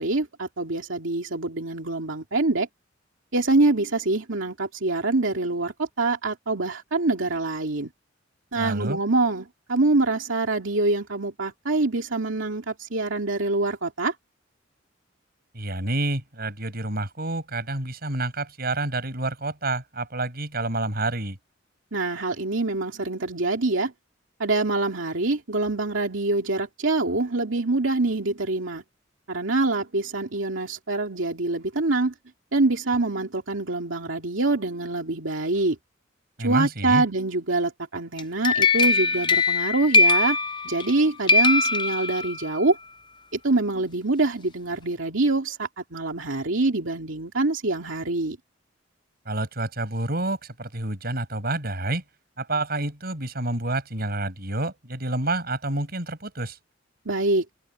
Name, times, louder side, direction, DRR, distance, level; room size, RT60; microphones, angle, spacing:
voice 1, 0.0-2.7 3.3-7.9 8.5-14.1 21.9-23.9 24.4-28.8 29.3-32.1 32.5-35.8 36.4-40.4 40.6-42.8 43.3-48.4 57.1-57.4, right 2 dB, 90° right, 2.3 m, -25 dB
voice 2, 8.5-9.0 15.5-21.4 36.4-37.0 49.2-52.0 52.4-56.6, right 2 dB, 50° right, 8.0 m, -28 dB
sound 1, 38.2-41.0 41.3-42.6, left 3 dB, 25° left, 0.5 m, -21 dB
head